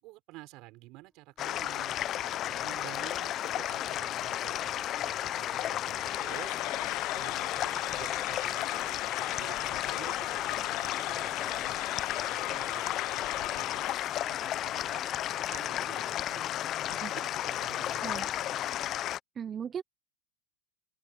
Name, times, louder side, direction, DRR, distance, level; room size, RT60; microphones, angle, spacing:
voice 1, 0.0-6.6 7.2-11.8 12.2-14.0 14.3-16.5 16.9-18.5, right 21 dB, 45° right, 5.8 m, -50 dB
sound 1, 0.9-2.2 3.4-13.7 14.0-18.9, left 1 dB, 5° left, 4.8 m, -58 dB
sound 2, 1.4-19.2, left 12 dB, 30° left, 0.5 m, -33 dB
sound 3, 5.9-14.3, left 21 dB, 55° left, 1.4 m, -39 dB
voice 2, 19.4-19.8, right 8 dB, 20° right, 0.4 m, -36 dB
supercardioid pair, 155°, 0 cm